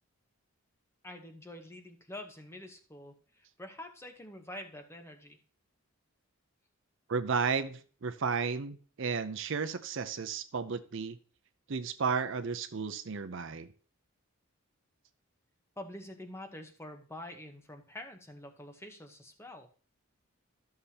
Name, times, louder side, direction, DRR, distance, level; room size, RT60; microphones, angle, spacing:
voice 1, 1.0-5.4 15.8-19.7, left 1 dB, 10° left, 5 dB, 0.9 m, -46 dB
voice 2, 7.1-11.2 11.7-13.7, right 5 dB, 60° right, 10 dB, 0.6 m, -33 dB
13.0 x 6.7 x 2.8 m, 0.41 s
head